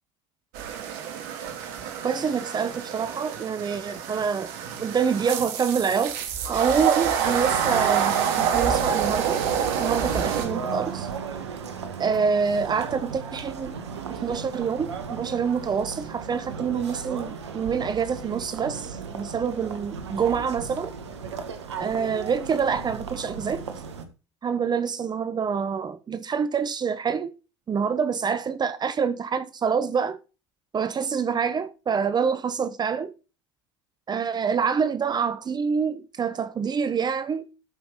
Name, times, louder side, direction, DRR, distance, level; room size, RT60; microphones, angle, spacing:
sound 1, 0.5-10.5, right 8 dB, 65° right, 2.3 m, -27 dB
voice 1, 2.0-4.5 4.8-6.2 6.5-9.4 9.8-11.1 12.0-13.7 14.2-20.9 21.8-23.6 24.4-27.3 27.7-30.2 30.7-33.1 34.1-37.5, right 6 dB, 30° right, 1.0 m, -26 dB
sound 2, 7.2-24.0, right 6 dB, 85° right, 1.6 m, -35 dB
13.5 x 5.8 x 4.0 m
hypercardioid pair, 75°, 14 cm